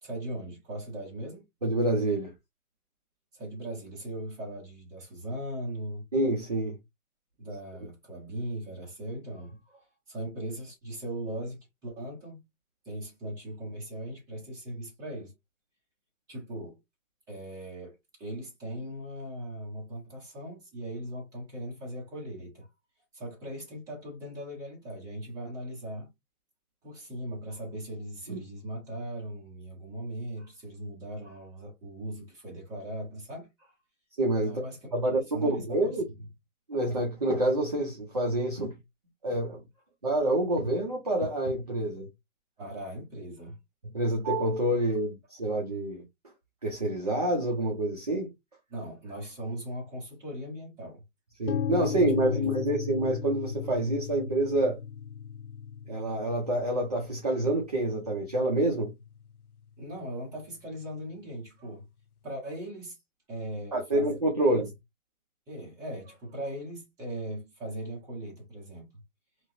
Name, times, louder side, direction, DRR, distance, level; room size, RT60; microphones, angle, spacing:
voice 1, 0.0-1.4 3.3-6.1 7.4-12.4 12.8-15.3 16.3-16.8 17.3-22.7 23.1-26.1 26.8-33.7 34.4-34.8 35.2-36.0 42.6-43.6 48.7-51.0 52.3-52.4 59.8-61.8 62.2-63.0 63.3-64.1 64.4-64.6 65.5-69.0, right 1 dB, 10° right, 0.8 m, -39 dB
voice 2, 1.6-2.3 6.1-6.8 28.3-28.4 34.2-34.6 34.9-36.1 36.7-38.8 39.2-39.6 40.0-42.1 43.9-46.0 46.6-48.3 51.4-54.8 55.9-58.9 63.7-64.7, right 1 dB, 30° right, 0.4 m, -27 dB
sound 1, 51.5-59.4, left 8 dB, 75° left, 0.5 m, -36 dB
3.0 x 2.4 x 2.6 m
hypercardioid pair, 145°, 44 cm